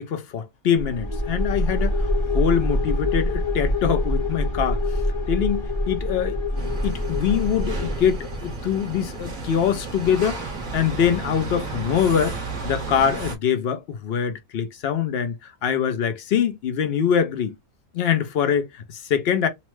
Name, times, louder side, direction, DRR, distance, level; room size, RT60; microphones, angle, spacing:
voice 1, 0.0-2.1 2.3-5.0 5.3-10.4 10.7-17.5 17.9-19.5, left 8 dB, 60° left, 0.7 m, -24 dB
sound 1, 0.7-8.5, left 1 dB, 25° left, 0.8 m, -25 dB
sound 2, 6.6-13.4, right 3 dB, 45° right, 0.8 m, -33 dB
2.8 x 2.1 x 3.0 m
omnidirectional pair, 1.4 m